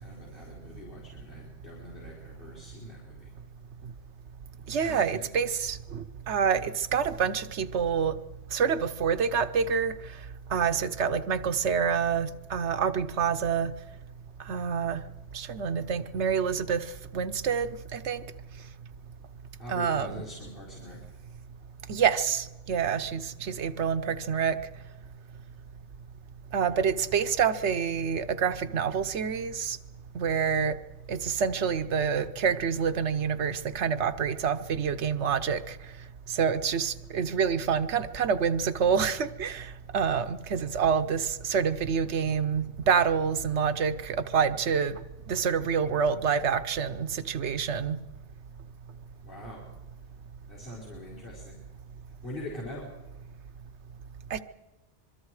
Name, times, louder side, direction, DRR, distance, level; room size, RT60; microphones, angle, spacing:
voice 1, 0.0-3.3 4.8-5.3 19.6-21.1 22.8-23.1 26.7-27.1 49.2-49.6 50.5-51.6 52.1-52.9, left 1 dB, 50° left, -4 dB, 4.8 m, -43 dB
voice 2, 4.7-8.1 8.5-9.9 10.5-13.7 14.5-15.0 15.3-16.8 17.1-18.2 19.7-20.2 21.9-24.6 26.5-29.8 30.1-30.8 31.1-35.8 36.3-45.0 45.3-48.0 54.3-54.4, right 7 dB, 75° right, 11 dB, 1.1 m, -27 dB
25.5 x 23.0 x 4.8 m, 1.0 s
omnidirectional pair, 1.2 m